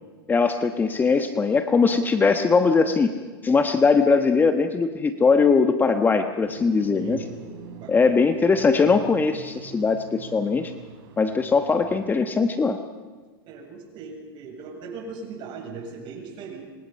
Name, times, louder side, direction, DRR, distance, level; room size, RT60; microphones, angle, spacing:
voice 1, 0.3-3.2 3.4-7.2 7.9-10.7 11.2-12.8, left 4 dB, 15° left, 7 dB, 1.3 m, -20 dB
sound 1, 6.4-12.1, right 7 dB, 70° right, 4.8 m, -43 dB
voice 2, 6.6-7.5 7.8-8.2 13.5-16.6, right 4 dB, 40° right, 2 dB, 7.7 m, -39 dB
27.0 x 26.0 x 5.5 m, 1.4 s
supercardioid pair, 125°, 12 cm